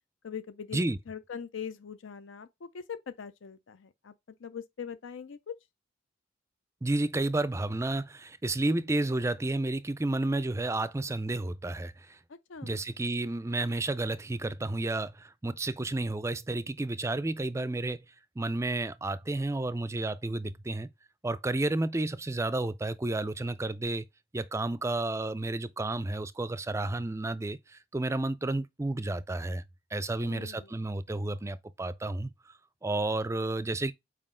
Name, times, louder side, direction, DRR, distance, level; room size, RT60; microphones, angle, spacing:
voice 1, 0.2-4.1 4.4-5.5 12.3-12.8 30.2-30.7, left 7 dB, 75° left, 0.5 m, -42 dB
voice 2, 6.8-12.2 12.6-18.0 18.4-20.9 21.2-24.1 24.3-29.6 29.9-32.5 32.8-33.9, right 2 dB, 15° right, 0.4 m, -31 dB
7.5 x 4.8 x 3.7 m
head